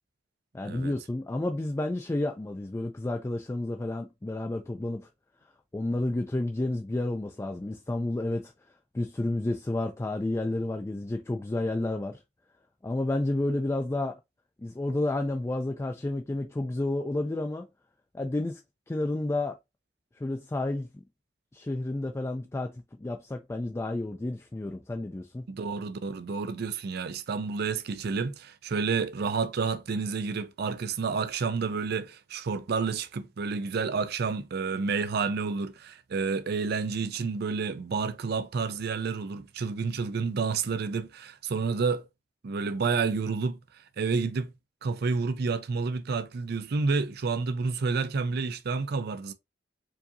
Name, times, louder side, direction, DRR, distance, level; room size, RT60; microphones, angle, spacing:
voice 1, 0.5-5.1 5.7-8.5 8.9-12.2 12.8-14.2 14.6-17.7 18.1-18.6 18.9-19.6 20.2-21.0 21.5-25.5, left 2 dB, 15° left, 0.3 m, -31 dB
voice 2, 25.5-42.0 42.4-43.6 44.0-44.5 44.8-49.3, right 4 dB, 60° right, 0.4 m, -30 dB
4.6 x 2.7 x 2.7 m
head